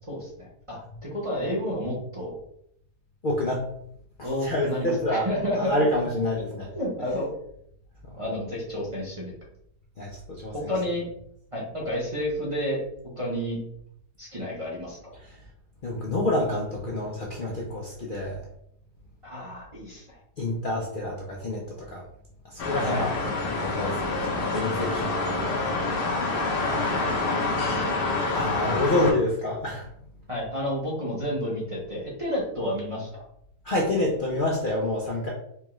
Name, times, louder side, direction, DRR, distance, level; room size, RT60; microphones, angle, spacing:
voice 1, 0.1-2.4 4.2-5.8 6.6-7.3 8.2-9.3 10.7-11.0 11.5-12.8 13.2-13.6 14.2-15.0 19.2-20.2 22.9-23.0 26.6-27.7 30.3-33.1, equal, 30° right, -6 dB, 0.7 m, -31 dB
voice 2, 3.2-3.6 4.2-5.3 5.6-6.7 8.1-8.2 10.0-10.7 15.8-18.4 20.4-22.0 22.5-23.1 23.5-25.4 28.3-29.9 33.6-35.3, left 1 dB, 75° left, -3 dB, 0.4 m, -28 dB
sound 1, 22.6-29.1, left 3 dB, 45° left, 0.8 m, -27 dB
4.5 x 2.3 x 3.0 m, 0.73 s
omnidirectional pair, 1.7 m